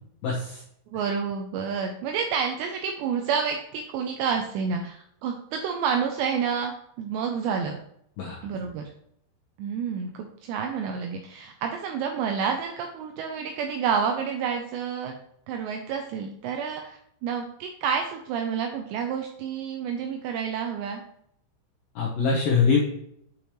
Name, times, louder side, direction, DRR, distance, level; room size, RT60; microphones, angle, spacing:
voice 1, 0.2-0.6 8.2-8.4 22.0-22.8, left 5 dB, 80° left, -4 dB, 2.0 m, -23 dB
voice 2, 0.9-7.8 8.4-8.8 9.6-15.1 15.5-21.0, right 6 dB, 85° right, 4 dB, 2.5 m, -29 dB
8.8 x 5.1 x 3.1 m, 0.72 s
omnidirectional pair, 5.6 m